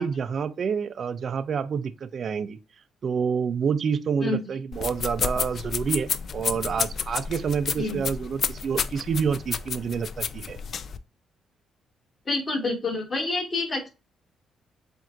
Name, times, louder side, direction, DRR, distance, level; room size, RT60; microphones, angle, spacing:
voice 1, 0.0-2.6 3.0-10.6, right 6 dB, 55° right, 0.4 m, -28 dB
sound 1, 4.7-11.0, left 6 dB, 55° left, 0.4 m, -31 dB
voice 2, 12.3-13.9, left 3 dB, 35° left, 2.1 m, -27 dB
7.2 x 2.5 x 2.5 m
cardioid pair, 90°, 0 cm